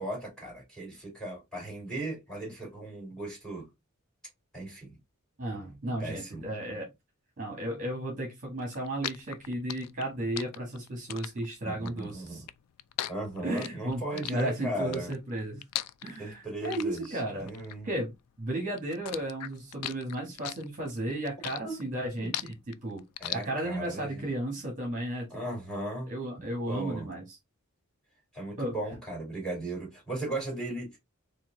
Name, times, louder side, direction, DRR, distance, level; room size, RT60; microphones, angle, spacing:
voice 1, 0.0-3.7 4.5-5.0 6.0-6.4 11.6-12.5 13.1-15.1 16.2-17.9 21.6-21.8 22.2-22.3 23.2-24.2 25.3-26.1 26.7-27.1 28.3-31.0, right 1 dB, 5° left, 2.8 m, -37 dB
voice 2, 5.4-6.9 7.4-12.4 13.4-15.6 16.0-17.5 17.8-18.1 18.4-23.0 23.3-25.3 26.1-27.4 28.6-28.7, right 1 dB, 35° right, 1.4 m, -34 dB
sound 1, 8.6-18.5 18.8-23.9, left 13 dB, 85° left, 0.3 m, -39 dB
4.3 x 2.6 x 3.7 m
head